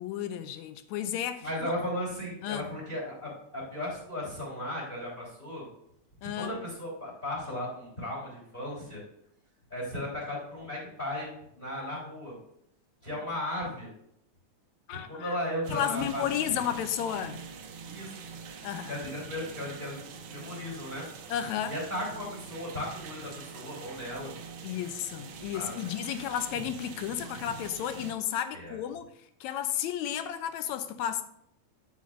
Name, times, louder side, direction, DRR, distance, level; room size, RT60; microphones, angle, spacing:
voice 1, 0.0-1.7 2.4-2.7 6.2-6.6 14.9-15.4 15.7-17.4 18.6-19.0 21.3-21.8 24.6-29.1 29.4-31.2, left 10 dB, 80° left, 1.8 m, -33 dB
voice 2, 1.4-5.7 6.4-9.0 9.7-12.4 13.0-13.9 15.1-16.7 17.9-18.3 18.9-21.0 21.7-24.3 25.5-25.7 28.5-28.8, left 1 dB, 15° left, 3.5 m, -36 dB
sound 1, 15.6-28.1, right 5 dB, 75° right, 1.2 m, -44 dB
8.5 x 8.4 x 2.6 m
omnidirectional pair, 3.5 m